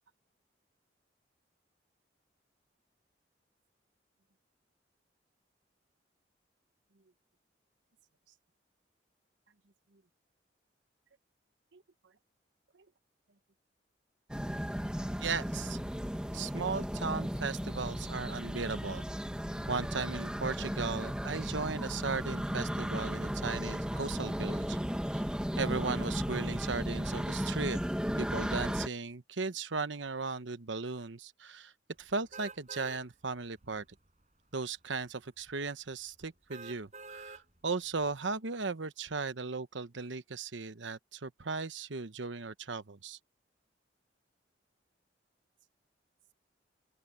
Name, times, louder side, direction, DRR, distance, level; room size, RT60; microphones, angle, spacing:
sound 1, 14.3-28.9, equal, 5° right, 1.6 m, -35 dB
voice 1, 15.2-15.8 16.3-19.0 19.7-24.8 25.1-25.2 25.6-27.8 28.2-31.7 32.0-33.8 34.5-43.2, right 4 dB, 85° right, 1.0 m, -37 dB
sound 2, 32.3-33.0 33.6-33.7 36.5-37.4 38.0-38.1, right 4 dB, 40° right, 6.2 m, -47 dB
open air
head